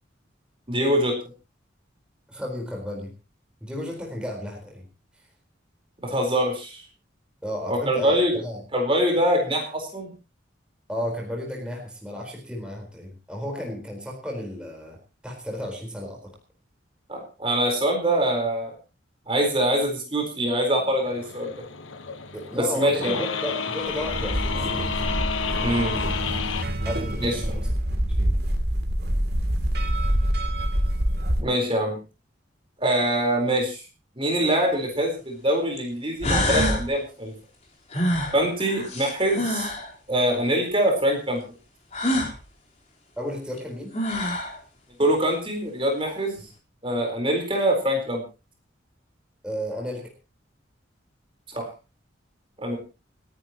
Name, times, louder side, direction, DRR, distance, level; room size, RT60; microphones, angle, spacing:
voice 1, 0.7-1.2 6.0-6.8 7.7-8.3 8.7-10.1 17.1-18.7 19.3-21.5 22.5-23.2 25.6-26.0 27.2-27.6 31.4-32.0 32.8-33.8 34.2-37.3 38.3-39.7 40.1-41.4 45.0-46.4 46.8-48.2 51.5-51.7 52.6-52.8, right 1 dB, 25° right, 2 dB, 4.2 m, -24 dB
voice 2, 2.3-3.1 3.6-4.9 7.4-8.6 10.9-15.0 15.2-16.3 22.3-24.8 26.8-28.4 43.2-43.9 49.4-50.1, left 1 dB, 5° right, 0 dB, 4.3 m, -33 dB
sound 1, 21.0-26.6, left 5 dB, 85° left, 1.3 m, -30 dB
sound 2, 23.9-31.4, equal, 55° right, 2.8 m, -26 dB
sound 3, 34.7-34.8 35.8-35.9 36.2-36.9 37.9-39.9 41.9-42.3 43.6-43.7 43.9-44.6, left 1 dB, 35° left, 4.0 m, -25 dB
29.0 x 10.5 x 3.0 m, 0.30 s
head